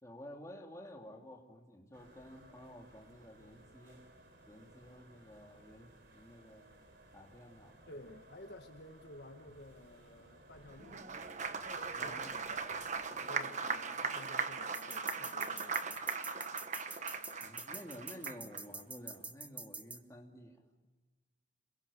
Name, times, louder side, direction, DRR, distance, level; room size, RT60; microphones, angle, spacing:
voice 1, 0.0-4.0 4.5-6.7 7.1-7.8 11.9-12.3 12.7-12.8 17.4-20.6, equal, 15° left, 1 dB, 2.5 m, -52 dB
sound 1, 1.9-13.1, right 1 dB, 60° right, 4.1 m, -59 dB
voice 2, 7.9-11.1 12.0-12.4 13.0-16.0, left 1 dB, 55° left, 5 dB, 1.5 m, -53 dB
Applause, 10.8-18.6, right 5 dB, 40° right, 1.2 m, -39 dB
sound 2, 14.7-20.0, right 3 dB, 10° right, 0.7 m, -45 dB
27.0 x 22.5 x 7.0 m, 1.3 s
head